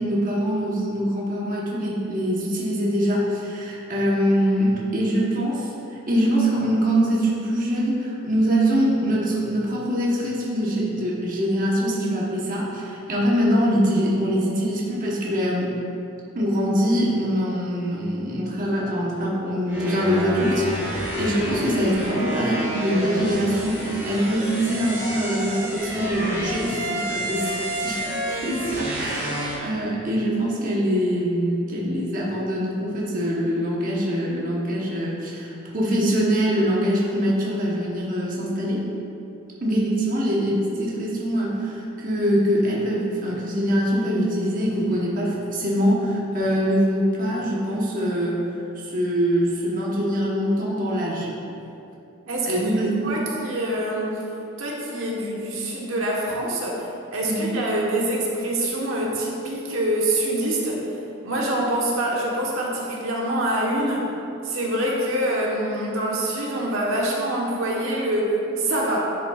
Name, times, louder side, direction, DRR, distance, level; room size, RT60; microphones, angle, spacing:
voice 1, 0.0-15.8 16.3-38.8 39.6-48.4 48.8-51.3 52.5-53.3 57.2-57.6, equal, 40° right, -5 dB, 1.0 m, -23 dB
sound 1, 19.7-29.6, equal, 10° right, 1.5 m, -29 dB
voice 2, 52.3-52.6 53.0-54.2 54.6-56.8 57.1-60.8 61.2-64.1 64.4-69.2, right 1 dB, 85° right, -3 dB, 1.1 m, -25 dB
10.5 x 5.4 x 2.4 m, 2.8 s
head